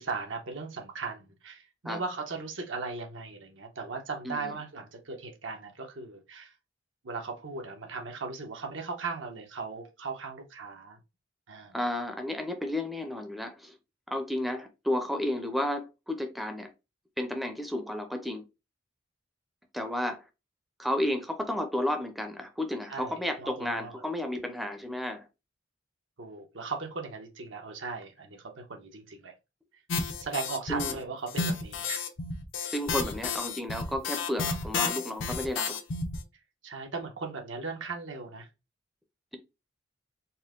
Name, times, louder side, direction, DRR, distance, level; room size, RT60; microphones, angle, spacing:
voice 1, 0.0-6.5 7.0-11.0 11.5-11.8 22.9-24.0 26.2-29.3 30.2-32.1 32.6-32.7 36.6-38.5, right 4 dB, 85° right, 1.0 m, -38 dB
voice 2, 11.7-13.7 14.1-16.7 17.2-18.4 19.7-20.2 20.8-25.3 30.7-31.0 32.7-35.8, left 1 dB, ahead, 0.5 m, -32 dB
sound 1, 29.9-30.9 31.3-36.2, left 4 dB, 85° left, 0.7 m, -31 dB
4.2 x 2.2 x 3.6 m
head